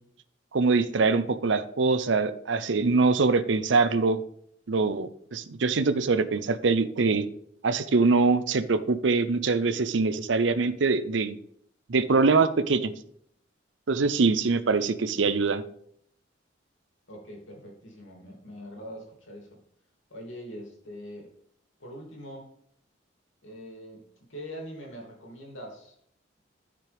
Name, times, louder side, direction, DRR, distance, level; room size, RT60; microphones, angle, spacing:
voice 1, 0.5-4.2 4.7-7.3 7.6-11.4 11.9-12.9 13.9-15.6, right 4 dB, 75° right, 13 dB, 0.6 m, -23 dB
voice 2, 17.1-19.6 20.1-21.3 21.8-22.5 23.4-24.0 24.3-26.0, equal, 90° left, 0 dB, 2.7 m, -43 dB
13.5 x 5.9 x 3.5 m, 0.67 s
head